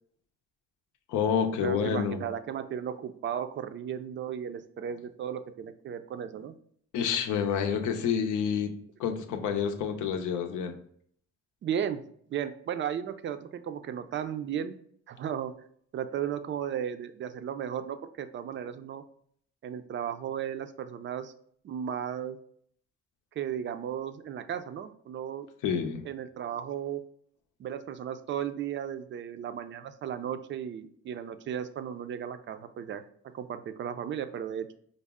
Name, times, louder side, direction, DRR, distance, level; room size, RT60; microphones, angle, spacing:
voice 1, 1.1-2.2 6.9-8.7 9.0-10.7 25.6-26.0, left 7 dB, 85° left, 5 dB, 0.6 m, -28 dB
voice 2, 1.6-6.5 11.6-12.0 12.3-14.8 15.1-15.5 15.9-19.0 19.6-21.3 21.6-22.4 23.4-25.5 26.0-27.0 27.6-33.0 33.3-34.7, right 9 dB, 40° right, 10 dB, 0.4 m, -35 dB
5.2 x 2.0 x 3.5 m, 0.62 s
cardioid pair, 90°, 30 cm